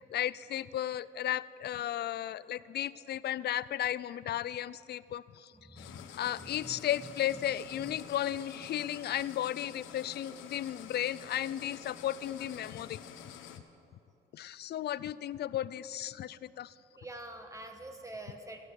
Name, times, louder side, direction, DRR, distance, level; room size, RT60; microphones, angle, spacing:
voice 1, 0.1-13.0 14.3-16.7, left 12 dB, 55° left, 18 dB, 0.4 m, -35 dB
voice 2, 5.5-7.5 7.7-8.0 16.9-18.6, right 1 dB, 15° right, 5 dB, 1.5 m, -47 dB
sound 1, 5.8-13.6, left 8 dB, 90° left, 0.8 m, -48 dB
16.5 x 8.6 x 6.5 m, 2.7 s
cardioid pair, 90°, 20 cm